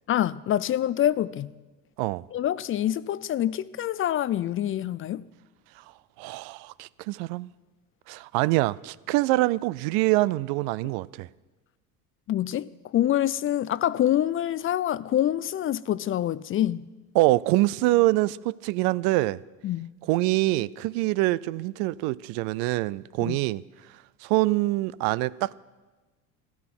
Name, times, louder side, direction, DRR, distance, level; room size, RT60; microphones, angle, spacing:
voice 1, 0.1-1.5 2.3-5.2 12.3-16.8 19.6-19.9 23.2-23.4, left 12 dB, 35° left, 0.4 m, -26 dB
voice 2, 6.2-7.5 8.1-11.3 17.1-19.4 20.1-23.6 24.2-25.6, right 19 dB, 70° right, 0.5 m, -25 dB
14.0 x 13.5 x 6.0 m
supercardioid pair, 85°, 41 cm